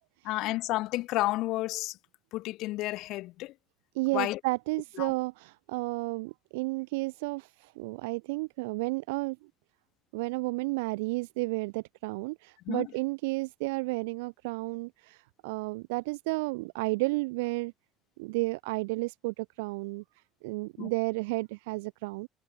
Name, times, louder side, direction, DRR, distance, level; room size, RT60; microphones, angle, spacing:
voice 1, 0.2-2.0 2.3-3.5 4.1-4.4 5.0-5.1 12.7-12.9 20.8-20.9, left 18 dB, 70° left, 0.9 m, -31 dB
voice 2, 3.9-9.4 10.1-17.7 18.2-20.0 20.4-22.3, right 25 dB, 85° right, 0.8 m, -32 dB
supercardioid pair, 75°, 0 cm